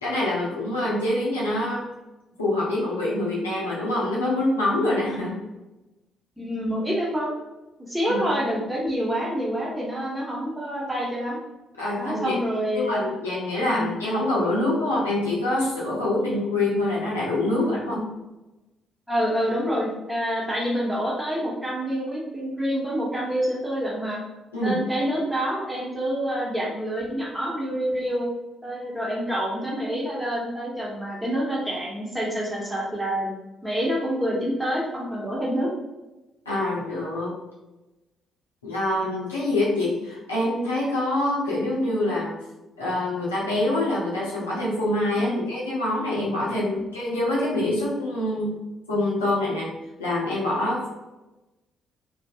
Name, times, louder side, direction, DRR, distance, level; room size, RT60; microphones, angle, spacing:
voice 1, 0.0-1.8 2.4-5.4 8.1-8.2 11.8-12.4 12.7-18.0 24.5-24.8 36.5-37.3 38.6-42.3 42.8-48.5 48.9-49.7 50.0-50.9, left 1 dB, 80° left, -7 dB, 0.6 m, -25 dB
voice 2, 6.4-7.3 7.9-11.4 11.9-13.1 13.6-13.9 17.5-18.1 19.1-24.2 24.6-28.3 28.6-33.3 33.6-35.7 45.2-45.4 46.5-46.8, equal, 5° right, -5 dB, 1.0 m, -27 dB
2.7 x 2.4 x 2.4 m, 1.0 s
figure-of-eight pair, 45°, 0 cm